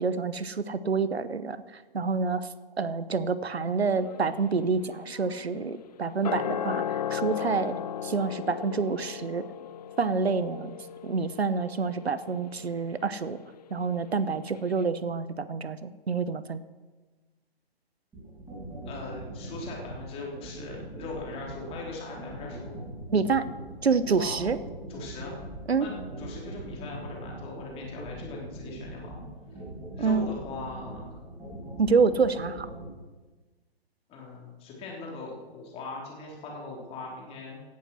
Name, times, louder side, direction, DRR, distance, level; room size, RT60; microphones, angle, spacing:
voice 1, 0.0-1.6 1.9-2.5 2.8-6.8 7.1-9.4 10.0-10.8 11.0-13.4 13.7-16.6 23.1-23.5 23.8-24.6 25.7-25.9 30.0-30.3 31.8-32.7, right 5 dB, 90° right, 15 dB, 1.0 m, -27 dB
sound 1, 3.8-14.2 14.5-14.6, left 9 dB, 40° left, 0.5 m, -37 dB
sound 2, 18.1-32.9, right 1 dB, 15° right, 5.6 m, -41 dB
voice 2, 18.9-22.8 24.2-24.3 24.9-25.3 25.8-25.9 26.2-29.2 29.9-31.2 34.1-37.6, left 3 dB, 20° left, -2 dB, 3.6 m, -40 dB
17.5 x 8.5 x 6.3 m, 1.3 s
hypercardioid pair, 140°, 31 cm